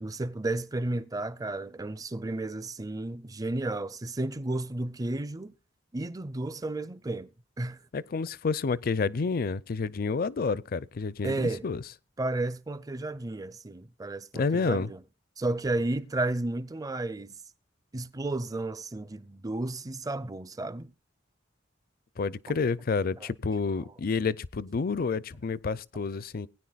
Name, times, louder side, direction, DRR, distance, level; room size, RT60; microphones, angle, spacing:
voice 1, 0.0-5.5 5.9-7.3 7.6-7.8 11.2-11.7 12.2-15.0 15.4-17.3 17.9-20.9, right 2 dB, 20° right, 0.5 m, -32 dB
voice 2, 7.9-11.8 14.3-14.9 22.2-26.5, left 4 dB, 50° left, 0.5 m, -29 dB
20.0 x 9.9 x 2.4 m
head